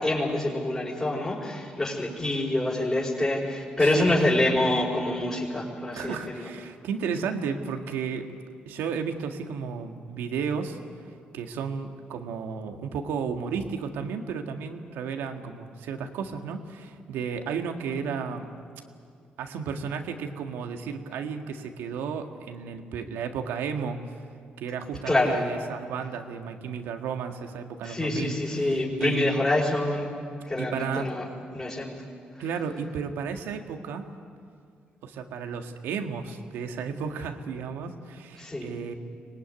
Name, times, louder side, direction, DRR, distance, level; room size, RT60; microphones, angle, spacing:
voice 1, 0.0-6.5 25.0-25.5 27.8-30.1 30.5-31.2 31.5-32.0 38.4-38.7, left 1 dB, 20° left, -5 dB, 5.1 m, -26 dB
voice 2, 3.8-4.1 5.9-8.3 8.6-10.8 11.3-18.5 19.4-24.0 24.6-29.4 30.6-31.1 32.4-34.1 35.0-38.9, right 6 dB, 85° right, 5 dB, 1.8 m, -33 dB
24.0 x 19.0 x 9.6 m, 2.3 s
supercardioid pair, 65°, 4 cm